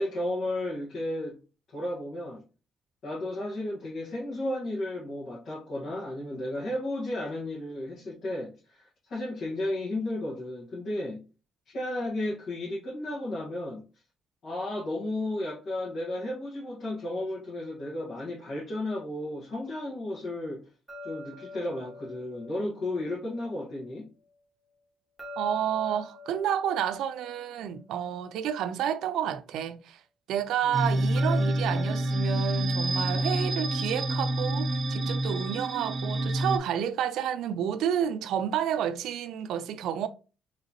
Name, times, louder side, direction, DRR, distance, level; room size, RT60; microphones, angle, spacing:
voice 1, 0.0-1.4 1.7-2.4 3.0-11.2 11.7-13.8 14.4-20.7 21.0-24.1 30.6-31.0, left 1 dB, 60° left, 1.4 m, -33 dB
sound 1, 20.9-24.0 25.2-28.7 31.2-34.2, left 1 dB, 5° right, 1.5 m, -46 dB
voice 2, 25.4-30.0 30.3-40.1, right 9 dB, 85° right, 0.4 m, -30 dB
sound 2, 30.7-36.6, right 1 dB, 40° right, 0.6 m, -27 dB
3.9 x 3.1 x 2.9 m
cardioid pair, 90°, 0 cm